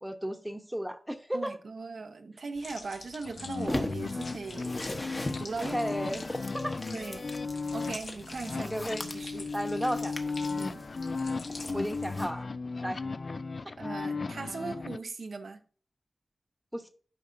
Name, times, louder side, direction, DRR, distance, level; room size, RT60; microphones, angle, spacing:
voice 1, 0.0-1.6 5.6-6.7 8.6-9.0 9.5-10.2 11.7-12.5 12.8-13.0 16.7-16.9, equal, 5° right, 0.9 m, -34 dB
voice 2, 1.3-4.7 5.4-6.1 6.9-7.2 7.7-9.5 10.5-10.9 13.8-15.6, right 4 dB, 80° right, 0.7 m, -39 dB
sound 1, 2.5-12.4, left 3 dB, 80° left, 1.6 m, -48 dB
sound 2, 3.2-15.0, left 4 dB, 55° left, 0.3 m, -36 dB
sound 3, 3.7-12.3, left 1 dB, 25° left, 0.9 m, -40 dB
12.0 x 4.9 x 2.6 m
wide cardioid pair, 80°, 0 cm